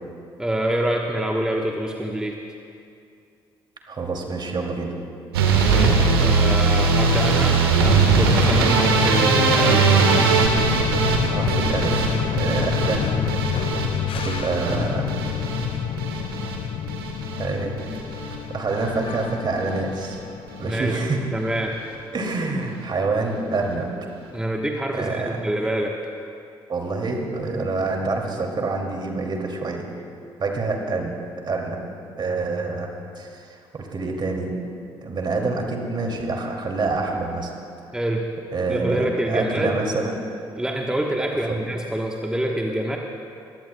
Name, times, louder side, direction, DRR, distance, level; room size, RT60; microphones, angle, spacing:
voice 1, 0.4-2.4 5.6-9.9 20.6-21.0 21.3-21.7 24.3-25.9 37.9-38.2 38.7-39.8 40.5-43.0, right 1 dB, 5° right, 0 dB, 1.2 m, -26 dB
voice 2, 3.9-4.9 11.3-13.1 13.3-13.7 14.1-15.1 17.4-17.9 18.5-20.2 20.6-21.2 22.1-23.9 24.9-25.4 26.7-30.0 30.4-31.2 31.4-31.8 32.2-32.9 33.2-34.5 35.0-37.5 38.5-40.2 41.5-41.6, right 3 dB, 35° right, 1 dB, 2.6 m, -27 dB
sound 1, 5.3-17.5 17.8-18.4 18.7-19.3 19.6-19.8 20.1-20.2 20.5-20.6, right 5 dB, 80° right, 1.4 m, -21 dB
sound 2, 7.8-21.9, left 10 dB, 45° left, 0.5 m, -28 dB
22.5 x 19.5 x 2.3 m, 2.5 s
figure-of-eight pair, 45°, 12 cm